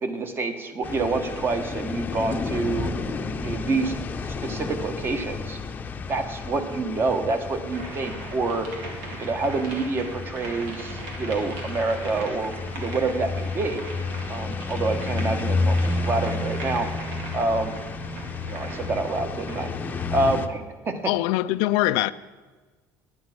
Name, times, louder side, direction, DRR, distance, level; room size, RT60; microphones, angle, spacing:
voice 1, 0.0-2.9 3.4-3.9 4.3-5.6 6.1-8.7 9.2-13.8 14.3-16.9 17.3-17.7 18.5-21.0, right 3 dB, 30° right, 1.3 m, -27 dB
sound 1, 0.8-20.5, left 3 dB, 25° left, 0.7 m, -31 dB
sound 2, 7.7-19.8, right 2 dB, 90° right, 2.3 m, -39 dB
voice 2, 21.0-22.1, left 17 dB, 90° left, 0.4 m, -22 dB
10.5 x 9.5 x 5.9 m
cardioid pair, 140°, 7 cm